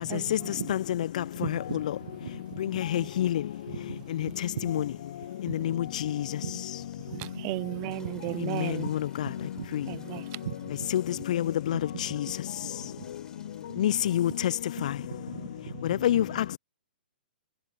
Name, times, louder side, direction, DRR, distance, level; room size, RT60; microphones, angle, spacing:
voice 1, 0.1-0.6 7.2-8.9 9.9-10.4, right 36 dB, 30° right, 0.9 m, -35 dB
voice 2, 1.4-2.3 2.7-3.1 3.7-3.8 4.3-4.7 6.4-6.5 7.1-7.3 8.0-8.1 8.4-8.5 9.2-9.7 10.4-10.7 11.7-12.2 14.8-15.7 16.1-16.2, right 10 dB, 55° right, 1.5 m, -39 dB
voice 3, 2.9-3.3 4.7-4.8 10.9-11.0 11.3-11.8 13.8-14.3 16.0-16.2, left 11 dB, 50° left, 0.5 m, -25 dB
Water / Toilet flush, 6.8-15.1, left 6 dB, 15° left, 5.2 m, -60 dB
figure-of-eight pair, 115°, 5 cm